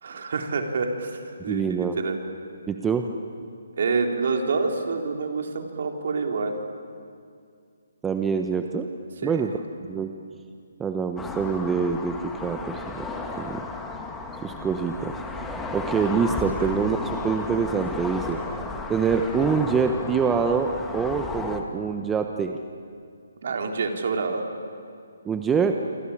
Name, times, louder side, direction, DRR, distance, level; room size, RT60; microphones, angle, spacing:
voice 1, 0.0-2.2 3.8-6.5 9.2-9.6 16.6-16.8 23.4-24.4, right 4 dB, 60° right, 3 dB, 3.9 m, -27 dB
voice 2, 1.4-2.0 2.7-3.1 8.0-8.9 9.2-9.5 9.9-10.1 10.8-12.2 12.4-13.1 13.4-13.6 14.4-15.2 15.7-17.0 17.2-18.4 18.9-22.6 25.2-25.7, right 6 dB, 10° right, 5 dB, 1.1 m, -25 dB
sound 1, 11.2-21.6, left 3 dB, 10° left, 1.9 m, -34 dB
28.0 x 24.0 x 8.8 m, 2.2 s
hypercardioid pair, 150°, 0 cm